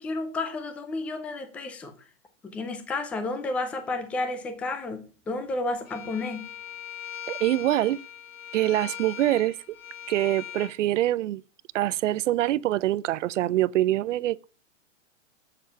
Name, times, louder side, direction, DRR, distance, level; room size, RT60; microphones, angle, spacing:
voice 1, 0.0-1.9 2.4-6.5, left 2 dB, 5° left, 0.4 m, -31 dB
Bowed string instrument, 5.9-10.7, left 10 dB, 80° left, 5.5 m, -40 dB
voice 2, 7.3-8.0 8.5-9.6 10.1-11.4 11.7-14.4, right 14 dB, 70° right, 0.6 m, -24 dB
7.6 x 6.8 x 5.4 m
hypercardioid pair, 145°, 38 cm